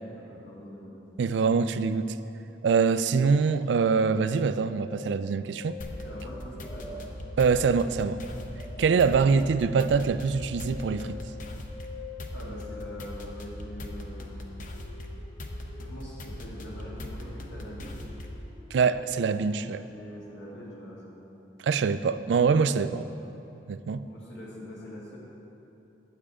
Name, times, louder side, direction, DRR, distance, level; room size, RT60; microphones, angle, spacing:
voice 1, 0.0-1.0 6.0-7.0 8.7-9.0 12.3-14.5 15.8-18.2 19.7-21.4 24.0-25.2, equal, 75° left, -5 dB, 2.2 m, -44 dB
voice 2, 1.2-2.2 2.6-5.8 7.4-8.2 8.8-11.2 18.7-19.8 21.6-23.0 23.7-24.0, right 5 dB, 70° right, 13 dB, 0.3 m, -24 dB
sound 1, 3.7-21.1, left 3 dB, 20° left, 1.2 m, -47 dB
sound 2, 5.8-18.5, left 1 dB, 45° left, 0.7 m, -40 dB
9.0 x 7.5 x 4.9 m, 3.0 s
head